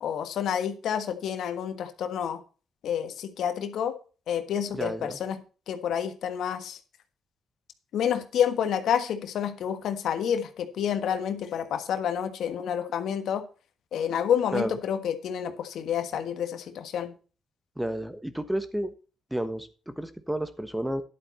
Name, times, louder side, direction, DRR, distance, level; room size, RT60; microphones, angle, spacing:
voice 1, 0.0-2.4 2.8-3.9 4.3-5.4 5.7-6.8 7.9-13.4 13.9-17.1, left 8 dB, 75° left, 9 dB, 1.4 m, -29 dB
voice 2, 4.7-5.1 14.5-14.8 17.8-18.9 19.3-21.0, right 1 dB, 5° right, 11 dB, 1.2 m, -31 dB
11.0 x 8.3 x 4.2 m, 0.35 s
cardioid pair, 90°, 0 cm